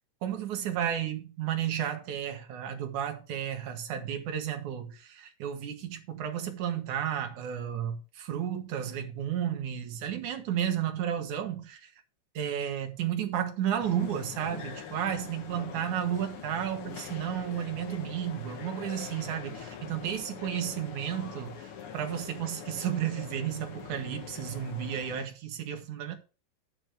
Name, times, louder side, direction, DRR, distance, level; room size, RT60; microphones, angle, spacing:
voice 1, 0.2-11.9 12.4-26.2, right 9 dB, 65° right, 2.5 m, -33 dB
sound 1, 13.8-25.3, left 7 dB, 65° left, 1.4 m, -44 dB
11.0 x 7.6 x 3.4 m
omnidirectional pair, 4.1 m